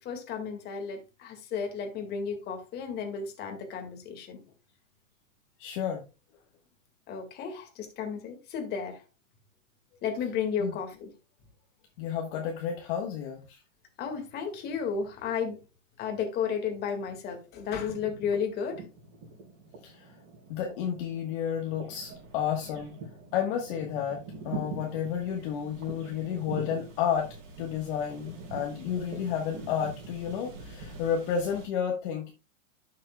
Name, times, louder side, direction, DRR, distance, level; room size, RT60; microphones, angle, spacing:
voice 1, 0.0-4.4 7.1-9.0 10.0-11.1 14.0-15.6 16.0-18.8, left 6 dB, 25° left, 4 dB, 1.9 m, -33 dB
voice 2, 5.6-6.0 10.6-10.8 12.0-13.6 19.8-20.2 20.5-23.0 23.3-32.3, left 8 dB, 40° left, 2 dB, 1.4 m, -31 dB
sound 1, 16.5-17.1 17.4-31.7, right 3 dB, 35° right, 4.5 m, -44 dB
11.5 x 6.6 x 2.3 m, 0.28 s
hypercardioid pair, 140°, 40 cm